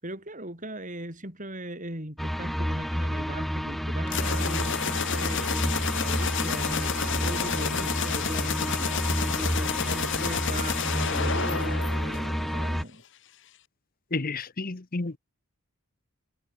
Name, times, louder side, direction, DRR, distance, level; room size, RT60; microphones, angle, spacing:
voice 1, 0.0-13.0, right 1 dB, 35° right, 5.8 m, -39 dB
sound 1, 2.2-12.8, equal, ahead, 2.2 m, -30 dB
sound 2, 4.1-12.7, left 7 dB, 55° left, 1.5 m, -30 dB
voice 2, 14.1-15.2, left 3 dB, 40° left, 1.0 m, -31 dB
head